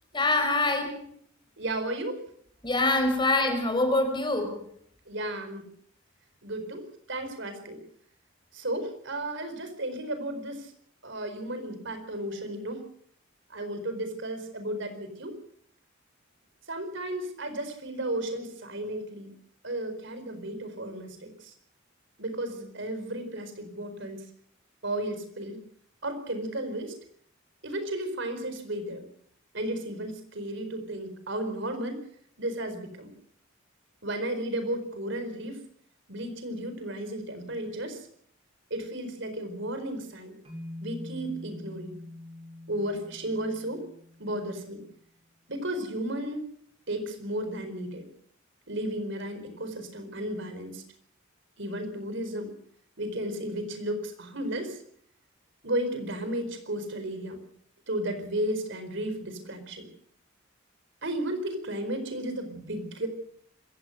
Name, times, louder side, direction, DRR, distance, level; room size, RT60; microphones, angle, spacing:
voice 1, 0.1-1.0 2.6-4.6, left 2 dB, 25° left, 7 dB, 4.8 m, -25 dB
voice 2, 1.6-2.2 5.1-5.7 6.4-7.8 8.5-10.7 11.0-12.8 13.5-15.3 16.7-19.3 19.6-21.5 22.2-24.2 24.8-25.6 26.0-26.9 27.6-29.0 29.5-32.0 32.4-33.1 34.0-35.6 36.1-38.1 38.7-40.3 40.8-42.0 42.7-43.8 44.2-44.8 45.5-46.5 46.9-48.1 48.7-50.8 51.6-52.5 53.0-54.8 55.6-57.4 57.9-59.9 61.0-63.1, right 1 dB, 65° right, 9 dB, 4.4 m, -34 dB
sound 1, 40.4-44.7, left 1 dB, 30° right, 6.2 m, -44 dB
26.0 x 16.0 x 6.6 m, 0.62 s
head